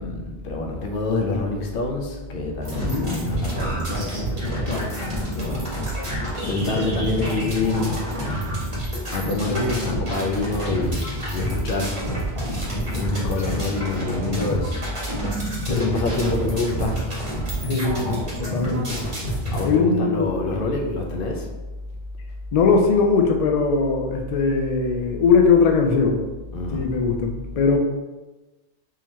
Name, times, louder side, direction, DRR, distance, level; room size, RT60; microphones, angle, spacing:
voice 1, 0.0-4.8 5.1-8.0 9.1-12.0 12.9-14.9 15.3-17.2 19.5-21.5 26.5-26.9, left 3 dB, 60° left, 2 dB, 0.7 m, -27 dB
sound 1, 2.6-19.6, right 1 dB, 30° right, 1.0 m, -28 dB
voice 2, 2.8-3.2 4.7-4.9 9.4-10.0 15.6-15.9 17.7-19.0 19.6-20.3 22.5-26.2 26.7-27.8, left 4 dB, 80° left, 3 dB, 0.3 m, -21 dB
3.7 x 2.9 x 3.1 m, 1.1 s
omnidirectional pair, 1.2 m